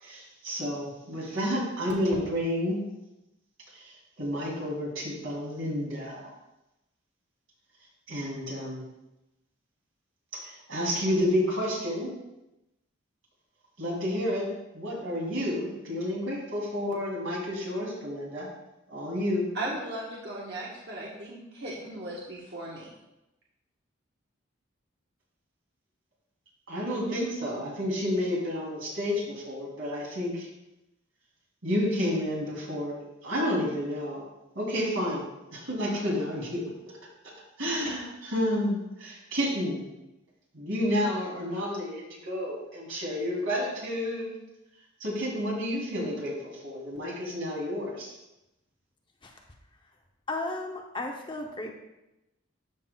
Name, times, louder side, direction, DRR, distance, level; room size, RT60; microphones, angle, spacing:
voice 1, 0.0-2.8 3.7-6.3 8.1-8.8 10.3-12.1 13.8-14.4 14.7-18.5 18.9-19.5 26.7-30.5 31.6-34.2 34.5-35.2 35.5-36.6 37.6-39.8 40.5-44.3 45.0-48.1, left 1 dB, 80° right, -4 dB, 3.1 m, -30 dB
voice 2, 19.5-22.9, right 1 dB, 55° right, -5 dB, 1.2 m, -37 dB
voice 3, 50.3-51.7, left 2 dB, 25° left, 1 dB, 0.7 m, -34 dB
13.0 x 5.9 x 2.3 m, 0.94 s
head